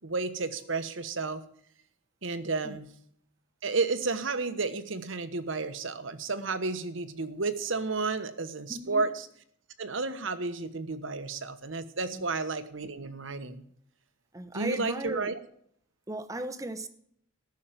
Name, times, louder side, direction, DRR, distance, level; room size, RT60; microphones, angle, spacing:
voice 1, 0.0-1.4 2.2-2.9 3.6-9.3 9.8-13.6 14.5-15.3, right 3 dB, 70° right, 1.2 m, -32 dB
voice 2, 8.7-9.0 12.1-12.2 14.3-15.3 16.1-16.9, right 1 dB, 15° right, 0.9 m, -36 dB
14.5 x 6.5 x 9.0 m
head